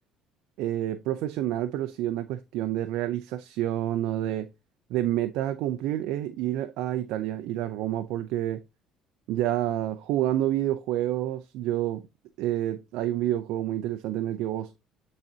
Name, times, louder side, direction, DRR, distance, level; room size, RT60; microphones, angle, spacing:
voice 1, 0.6-4.5 4.9-8.6 9.3-12.0 12.4-14.7, right 13 dB, 75° right, 0.5 m, -28 dB
10.5 x 3.9 x 2.8 m
cardioid pair, 110°, 0 cm